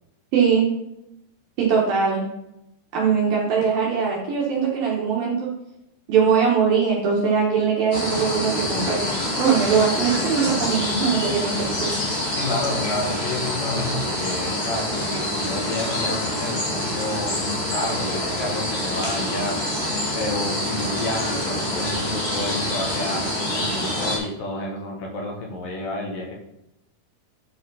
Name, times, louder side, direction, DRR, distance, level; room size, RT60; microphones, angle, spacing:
voice 1, 0.3-0.7 1.6-2.3 2.9-5.5 6.1-9.0 9.4-11.9, right 6 dB, 70° right, -4 dB, 2.8 m, -21 dB
sound 1, 7.9-24.2, left 1 dB, 90° left, 0.5 m, -26 dB
voice 2, 12.4-19.6 20.2-26.4, left 1 dB, 65° left, -1 dB, 2.8 m, -30 dB
9.9 x 5.0 x 4.0 m, 0.84 s
omnidirectional pair, 4.6 m